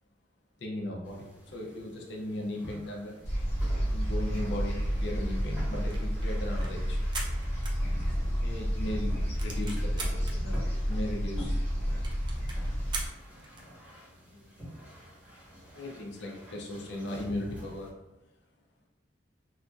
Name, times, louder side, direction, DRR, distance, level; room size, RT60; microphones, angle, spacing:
voice 1, 0.6-1.2 1.5-3.1 3.7-7.0 8.0-9.1 9.4-11.6 14.3-14.5 15.7-17.9, left 1 dB, 70° left, 0 dB, 0.5 m, -37 dB
sound 1, 1.0-17.9, equal, 10° right, 1.0 m, -48 dB
sound 2, 3.2-13.1, equal, 40° left, 1.0 m, -30 dB
sound 3, 5.9-8.4 8.8-8.9 9.1-10.4 11.0-11.1 11.2-11.3 11.6-11.7 12.0-13.7, right 3 dB, 25° right, 0.4 m, -41 dB
2.9 x 2.5 x 2.3 m, 0.98 s
head